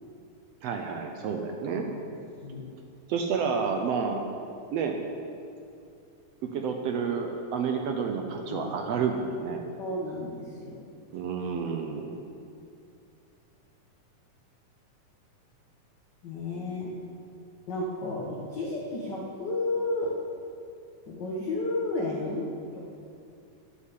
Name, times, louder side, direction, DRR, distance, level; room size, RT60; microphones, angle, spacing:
voice 1, 0.6-1.9 3.1-4.3 4.7-5.0 6.4-9.6 11.1-12.2, right 5 dB, 75° right, 4 dB, 1.5 m, -30 dB
voice 2, 8.3-8.7 9.8-11.0 16.2-16.9 17.7-20.1 21.1-22.8, left 2 dB, 55° left, -3 dB, 1.2 m, -32 dB
9.9 x 8.4 x 8.5 m, 2.5 s
omnidirectional pair, 3.7 m